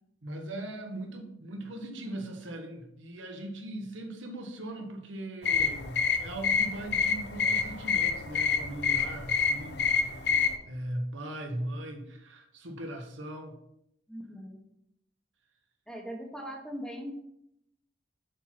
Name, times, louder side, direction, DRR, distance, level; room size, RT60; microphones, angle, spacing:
voice 1, 0.2-9.8 10.7-13.6, right 1 dB, 75° right, 2 dB, 1.3 m, -39 dB
sound 1, 5.4-10.6, left 6 dB, 55° left, 0.8 m, -28 dB
voice 2, 14.1-14.6 15.9-17.2, equal, 5° left, 0 dB, 1.1 m, -40 dB
6.6 x 4.6 x 5.9 m, 0.80 s
head